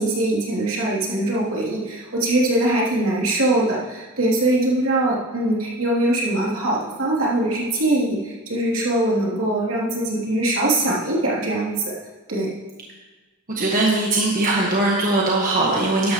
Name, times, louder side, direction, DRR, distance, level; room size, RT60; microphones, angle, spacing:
voice 1, 0.0-12.0 12.3-12.5, right 1 dB, 70° right, -5 dB, 3.0 m, -22 dB
voice 2, 13.5-16.1, right 2 dB, 40° right, -3 dB, 1.4 m, -20 dB
13.5 x 11.0 x 3.1 m, 1.2 s
head